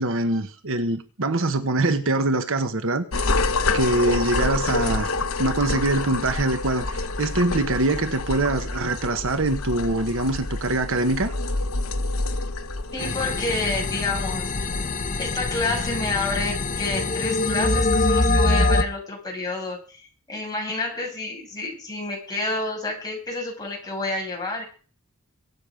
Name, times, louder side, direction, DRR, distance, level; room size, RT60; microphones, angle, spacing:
voice 1, 0.0-3.3 3.7-5.1 5.4-11.3, right 2 dB, 60° right, 1.2 m, -24 dB
sound 1, 3.1-17.0, left 3 dB, 65° left, 1.1 m, -28 dB
voice 2, 12.9-14.7 15.2-24.6, left 2 dB, 20° left, 6.6 m, -29 dB
sound 2, 13.0-18.8, left 2 dB, 35° left, 1.4 m, -24 dB
23.5 x 8.1 x 5.1 m
head